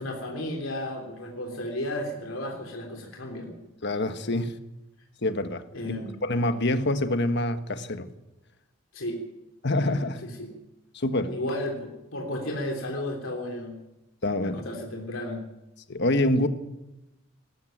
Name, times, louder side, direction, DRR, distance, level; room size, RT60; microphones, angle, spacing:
voice 1, 0.0-3.6 5.7-6.1 8.9-9.2 10.2-10.5 11.3-13.8 14.4-15.4, left 1 dB, 70° left, 3.4 m, -33 dB
voice 2, 3.8-4.6 5.2-5.9 6.2-8.1 9.6-10.2 10.9-11.3 14.2-14.6 15.9-16.5, left 1 dB, 55° left, 1.5 m, -26 dB
20.0 x 14.5 x 9.3 m
head